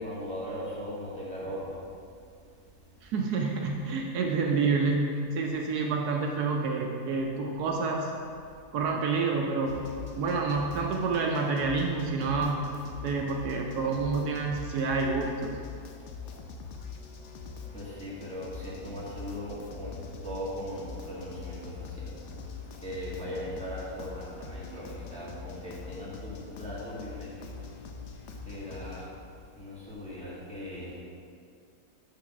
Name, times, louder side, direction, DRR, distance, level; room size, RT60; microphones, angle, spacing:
voice 1, 0.0-1.8 17.7-20.0 20.2-22.2 22.8-27.4 28.4-29.1 29.6-31.0, equal, 5° left, -8 dB, 1.2 m, -38 dB
voice 2, 3.0-8.1 8.7-9.7 10.1-12.7 13.0-15.6, right 4 dB, 75° right, 1 dB, 1.1 m, -28 dB
sound 1, 9.7-29.1, left 5 dB, 70° left, 0.7 m, -43 dB
6.4 x 3.8 x 5.8 m, 2.3 s
omnidirectional pair, 1.8 m